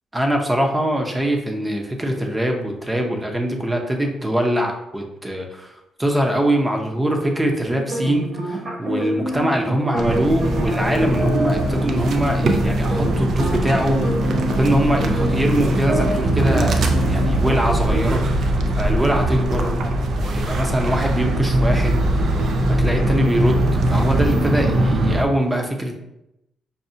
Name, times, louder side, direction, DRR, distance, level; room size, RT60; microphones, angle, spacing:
voice 1, 0.1-5.7 6.0-19.7 20.2-22.0 22.7-25.9, right 1 dB, 15° right, 2 dB, 0.7 m, -23 dB
sound 1, 7.7-18.1, equal, 40° right, 1.3 m, -27 dB
sound 2, 10.0-25.2, right 1 dB, 60° right, 0.4 m, -21 dB
5.4 x 2.3 x 2.7 m, 0.86 s
cardioid pair, 90°, 0 cm